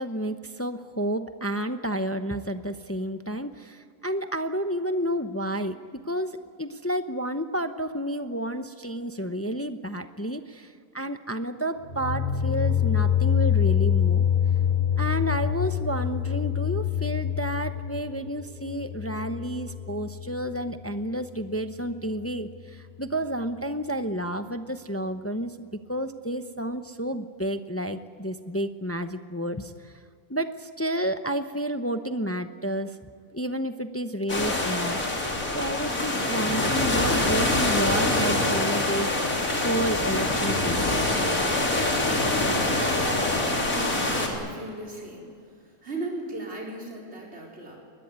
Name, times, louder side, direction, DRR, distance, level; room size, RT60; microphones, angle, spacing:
voice 1, 0.0-5.8 6.1-10.7 10.9-14.2 15.0-29.7 30.3-33.0 33.3-35.1 35.5-39.3 39.6-41.0, right 1 dB, 15° left, 9 dB, 0.6 m, -30 dB
sound 1, 11.8-20.7, left 9 dB, 35° left, 6.8 m, -25 dB
sound 2, 34.3-44.3, left 2 dB, 65° left, 4.0 m, -25 dB
voice 2, 43.6-45.3 45.8-47.8, right 2 dB, 45° right, -2 dB, 4.5 m, -36 dB
22.0 x 20.5 x 9.6 m, 2.3 s
omnidirectional pair, 1.6 m